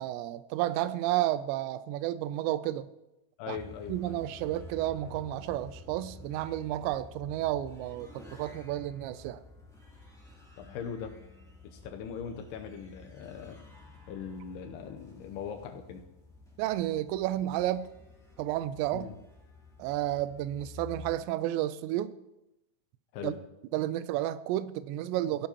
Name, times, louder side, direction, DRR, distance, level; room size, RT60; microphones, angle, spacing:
voice 1, 0.0-2.9 3.5-3.6 3.9-9.4 16.6-17.9 18.4-19.1 19.8-22.1 23.2-23.3 23.7-25.5, right 13 dB, 85° right, 15 dB, 2.8 m, -31 dB
voice 2, 3.4-4.2 10.6-11.1 11.6-13.6 14.1-16.0 18.9-19.1 23.1-23.4, left 7 dB, 75° left, 5 dB, 2.6 m, -40 dB
sound 1, 3.5-21.1, left 3 dB, ahead, 2.0 m, -51 dB
16.5 x 11.0 x 2.9 m, 0.92 s
omnidirectional pair, 5.0 m